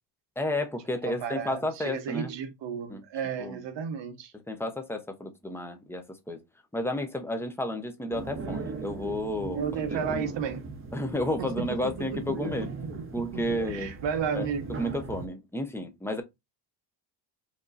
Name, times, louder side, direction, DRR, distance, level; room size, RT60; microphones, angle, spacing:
voice 1, 0.4-2.3 2.9-3.0 3.4-3.6 4.5-6.4 6.7-9.6 10.1-10.2 10.9-12.7 13.1-13.9 14.3-16.2, left 1 dB, 5° left, 0.7 m, -32 dB
voice 2, 1.0-4.3 9.5-10.7 11.4-13.0 13.3-14.8, right 6 dB, 65° right, 1.0 m, -33 dB
sound 1, 8.1-15.3, right 4 dB, 25° right, 0.8 m, -38 dB
5.0 x 2.9 x 2.5 m
cardioid pair, 125°, 48 cm